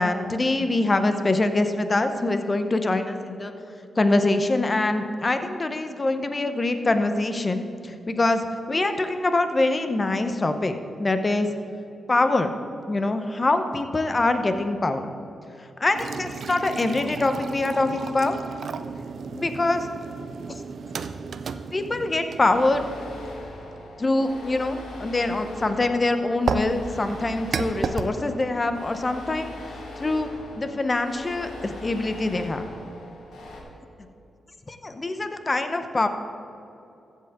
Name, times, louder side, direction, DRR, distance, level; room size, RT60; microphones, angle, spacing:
voice 1, 0.0-3.5 4.0-10.7 11.0-11.5 12.1-12.5 12.9-15.1 15.8-18.4 19.2-19.9 21.7-22.8 24.0-29.5 30.0-30.3 30.6-32.7 34.7-36.1, left 2 dB, 35° left, 8 dB, 0.9 m, -24 dB
sound 1, 15.9-23.6 26.5-28.1, right 5 dB, 70° right, 0.4 m, -33 dB
sound 2, 22.5-33.6, left 2 dB, 90° left, 1.7 m, -40 dB
15.0 x 7.5 x 3.6 m, 2.8 s
cardioid pair, 65°, 0 cm